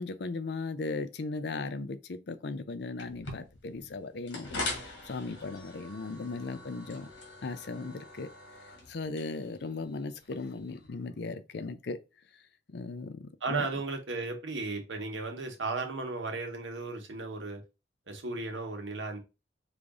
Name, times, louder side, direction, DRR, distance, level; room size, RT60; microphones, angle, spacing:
voice 1, 0.0-7.1 7.4-8.3 8.9-12.0 12.7-13.7, left 3 dB, 65° left, 0.5 m, -37 dB
sound 1, 3.0-10.9, left 2 dB, 85° left, 1.6 m, -43 dB
voice 2, 13.4-17.6 18.1-19.2, right 3 dB, 85° right, 1.1 m, -35 dB
5.0 x 2.5 x 3.6 m
head